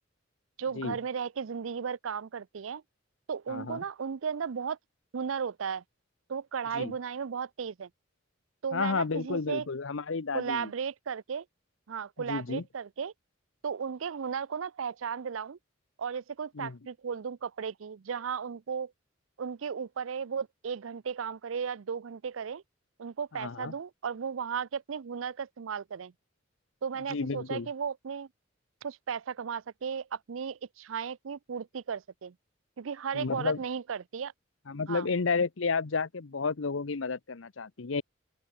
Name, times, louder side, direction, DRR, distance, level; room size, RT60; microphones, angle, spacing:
voice 1, 0.6-2.8 3.3-4.8 5.1-5.8 6.3-7.9 8.6-9.7 10.3-11.4 11.9-13.1 13.6-15.6 16.0-18.9 19.4-22.6 23.0-26.1 26.8-28.3 28.8-32.3 32.8-34.3 34.9-35.1, right 6 dB, 80° right, 0.5 m, -35 dB
voice 2, 3.5-3.8 6.7-6.9 8.7-10.7 12.3-12.6 16.5-16.8 23.3-23.7 27.1-27.7 33.1-33.6 34.7-38.0, left 4 dB, 75° left, 0.8 m, -31 dB
open air
head